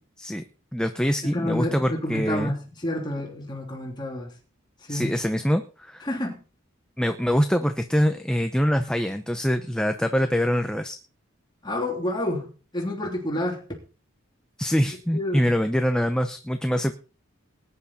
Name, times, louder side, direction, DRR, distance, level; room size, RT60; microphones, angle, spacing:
voice 1, 0.7-2.5 4.9-6.1 7.0-11.0 14.6-16.9, equal, 5° left, 6 dB, 0.7 m, -24 dB
voice 2, 1.3-4.3 4.9-5.1 6.0-6.4 11.6-12.5 12.7-13.6 15.1-15.5, left 1 dB, 20° left, -1 dB, 3.2 m, -29 dB
20.0 x 11.0 x 4.3 m, 0.36 s
head